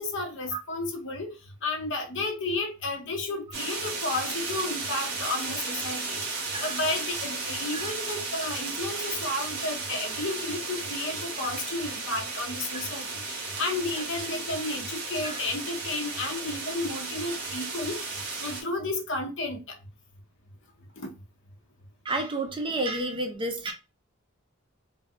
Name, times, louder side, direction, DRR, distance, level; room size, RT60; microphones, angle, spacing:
voice 1, 0.0-1.3 1.6-18.1 18.4-19.8 21.0-21.1, left 2 dB, 55° left, 2 dB, 0.8 m, -32 dB
sound 1, 3.5-18.6, right 3 dB, 50° right, 1.0 m, -34 dB
voice 2, 22.1-23.7, right 2 dB, 25° right, 3 dB, 0.4 m, -31 dB
2.6 x 2.3 x 3.4 m, 0.30 s
head